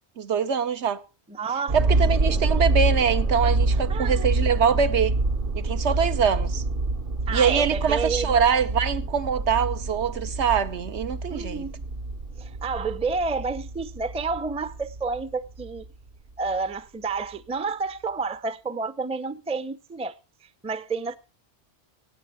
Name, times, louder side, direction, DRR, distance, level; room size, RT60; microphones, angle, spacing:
voice 1, 0.2-1.0 1.7-5.2 5.6-6.6 7.3-11.7, right 7 dB, 85° right, 1.2 m, -24 dB
voice 2, 1.3-1.8 2.3-2.4 3.9-4.3 7.3-8.3 11.3-11.9 12.4-15.9 16.4-20.1 20.6-21.2, right 4 dB, 10° right, 0.4 m, -30 dB
sound 1, 1.7-15.9 16.5-16.6, right 2 dB, 55° right, 1.0 m, -27 dB
17.5 x 9.4 x 4.7 m
omnidirectional pair, 1.1 m